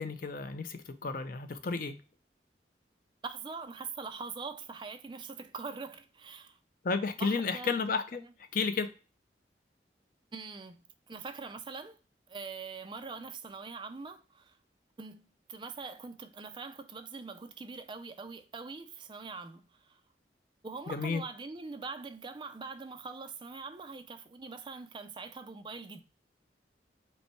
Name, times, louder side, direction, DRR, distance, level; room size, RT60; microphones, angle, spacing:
voice 1, 0.0-2.0 6.8-8.2 8.5-8.9 20.9-21.2, left 4 dB, 50° left, 0.5 m, -32 dB
voice 2, 3.2-6.6 7.2-7.8 8.2-8.3 10.3-12.0 12.3-14.6 15.0-20.0 20.6-26.0, right 4 dB, 25° right, 0.4 m, -43 dB
5.3 x 2.1 x 4.4 m
head